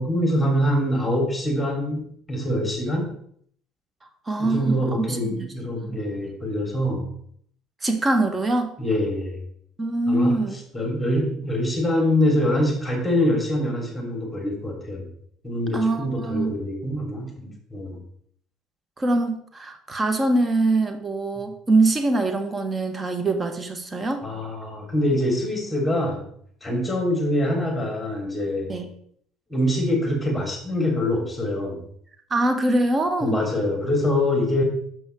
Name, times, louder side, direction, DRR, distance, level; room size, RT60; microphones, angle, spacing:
voice 1, 0.0-3.1 4.4-7.1 8.8-9.4 10.1-15.1 15.4-18.0 24.2-26.2 26.6-28.7 29.5-31.9 33.2-34.6, left 1 dB, 10° left, 1 dB, 3.2 m, -24 dB
voice 2, 4.3-5.5 5.8-6.0 7.8-8.7 9.8-10.6 15.7-16.5 19.0-24.3 28.7-28.9 32.3-33.4, right 2 dB, 25° right, 6 dB, 1.4 m, -23 dB
6.2 x 5.6 x 4.6 m, 0.64 s
hypercardioid pair, 70°, 0 cm